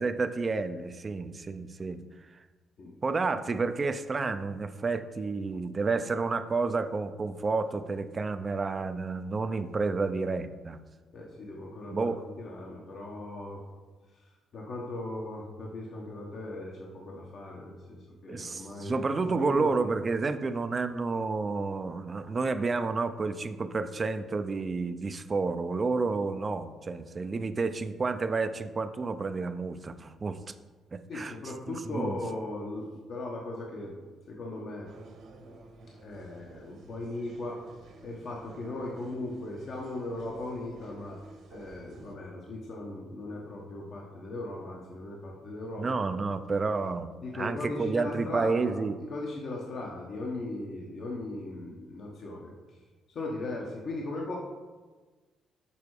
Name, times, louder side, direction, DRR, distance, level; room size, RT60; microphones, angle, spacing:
voice 1, 0.0-2.0 3.0-10.8 11.9-12.2 18.3-30.4 30.9-31.4 31.7-32.2 45.8-49.0, right 4 dB, 35° right, 11 dB, 0.5 m, -30 dB
voice 2, 11.1-12.1 12.4-13.6 14.1-19.7 31.1-34.0 34.3-34.9 36.0-37.6 38.0-41.2 41.5-46.2 47.2-48.8 49.1-52.8 53.1-54.4, left 2 dB, 60° left, -2 dB, 1.1 m, -38 dB
sound 1, 34.9-42.1, right 3 dB, 75° right, 1.7 m, -53 dB
6.9 x 4.6 x 4.8 m, 1.3 s
cardioid pair, 90°, 0 cm